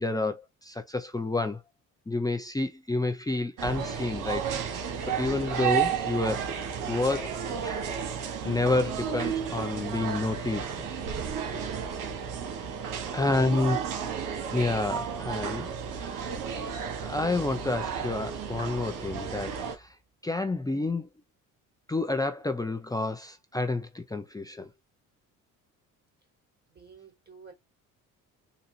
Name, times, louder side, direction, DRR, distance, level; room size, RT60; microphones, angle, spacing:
voice 1, 0.0-1.6 2.1-4.5 5.1-6.5 6.9-7.4 7.6-7.9 8.4-10.7 13.1-13.8 14.5-15.7 15.9-16.4 17.0-20.0 20.2-21.1 21.9-24.7, left 2 dB, 10° left, 0.6 m, -29 dB
sound 1, 3.6-19.8, right 7 dB, 75° right, 1.3 m, -33 dB
voice 2, 12.9-13.4 26.7-27.5, right 5 dB, 30° right, 2.9 m, -51 dB
4.0 x 2.7 x 2.7 m
cardioid pair, 80°, 33 cm